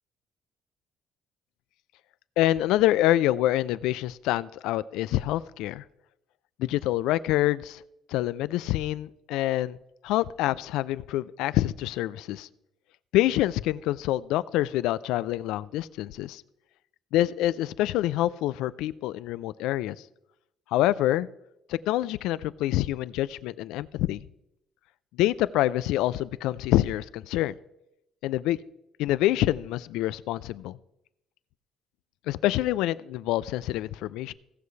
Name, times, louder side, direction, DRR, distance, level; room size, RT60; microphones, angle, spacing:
voice 1, 2.4-5.8 6.6-7.8 8.1-9.8 10.0-12.5 13.1-16.4 17.1-20.0 20.7-21.3 21.7-24.3 25.1-27.6 28.2-28.6 29.0-30.8 32.3-34.3, left 15 dB, 90° left, 16 dB, 0.3 m, -26 dB
17.0 x 6.8 x 3.2 m, 0.87 s
cardioid pair, 145°, 0 cm